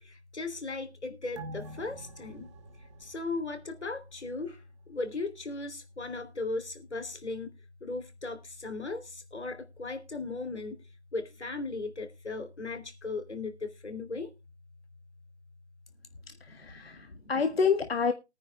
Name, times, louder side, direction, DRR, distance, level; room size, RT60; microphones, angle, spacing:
voice 1, 0.0-2.5 3.0-4.6 4.9-7.5 7.8-10.8 11.1-14.3 16.5-17.3, left 3 dB, 80° left, 3.3 m, -37 dB
sound 1, 1.4-4.3 4.6-4.7, right 1 dB, 25° right, 1.3 m, -46 dB
voice 2, 16.3-18.1, left 5 dB, 60° left, 1.4 m, -28 dB
22.5 x 9.7 x 2.3 m
figure-of-eight pair, 150°, 34 cm